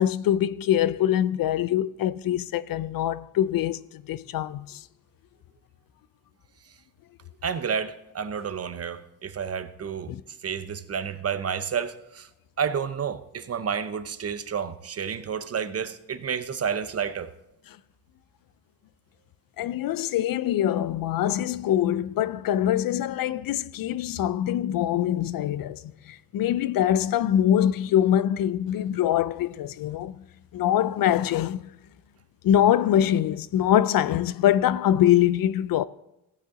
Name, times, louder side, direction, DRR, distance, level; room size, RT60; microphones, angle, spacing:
voice 1, 0.0-4.8 10.1-10.2 19.6-30.2 30.5-31.7 32.4-35.8, left 11 dB, 60° left, 0.5 m, -24 dB
voice 2, 7.4-10.1 10.4-12.3 12.6-17.3, right 7 dB, 35° right, 0.7 m, -30 dB
16.0 x 7.6 x 3.7 m
cardioid pair, 85°, 40 cm